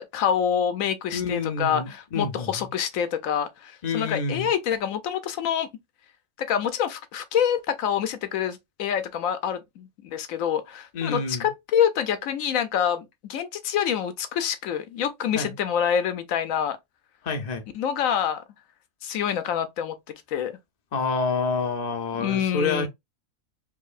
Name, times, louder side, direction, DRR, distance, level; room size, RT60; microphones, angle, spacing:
voice 1, 0.0-5.7 6.4-16.8 17.7-18.4 19.0-20.0 20.3-20.6 22.2-22.9, left 8 dB, 75° left, 1.0 m, -26 dB
voice 2, 1.1-2.7 3.8-4.5 10.9-11.5 15.3-15.5 17.2-17.6 20.9-22.9, left 4 dB, 45° left, 0.5 m, -28 dB
4.7 x 2.8 x 2.4 m
omnidirectional pair, 1.5 m